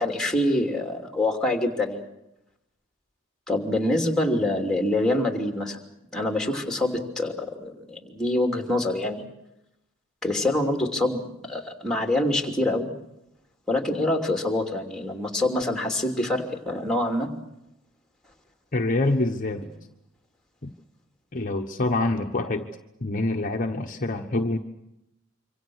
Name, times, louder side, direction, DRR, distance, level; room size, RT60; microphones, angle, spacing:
voice 1, 0.0-2.0 3.5-5.8 6.1-9.2 10.2-12.9 13.7-17.3, left 1 dB, 5° left, 3 dB, 2.9 m, -25 dB
voice 2, 18.7-19.7 20.6-20.7 21.3-22.7 23.0-24.6, left 2 dB, 40° left, 3 dB, 1.2 m, -26 dB
26.5 x 25.0 x 6.4 m, 0.88 s
head